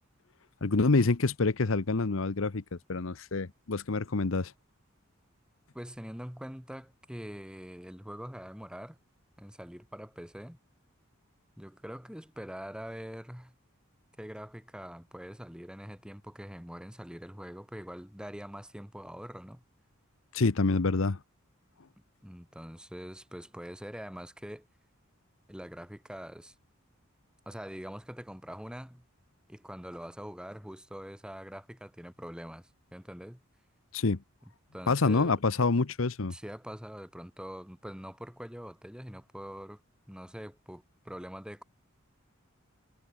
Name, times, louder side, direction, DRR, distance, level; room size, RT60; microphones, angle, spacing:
voice 1, 0.6-2.6 2.9-4.5 20.3-21.2 33.9-34.2 34.9-36.3, left 3 dB, 70° left, 0.9 m, -27 dB
voice 2, 5.7-9.0 9.4-10.6 11.6-13.5 14.2-19.6 22.2-24.7 25.5-26.5 27.5-29.1 29.5-33.4 34.7-35.4 36.3-39.8 40.1-41.6, equal, 5° right, 2.7 m, -44 dB
head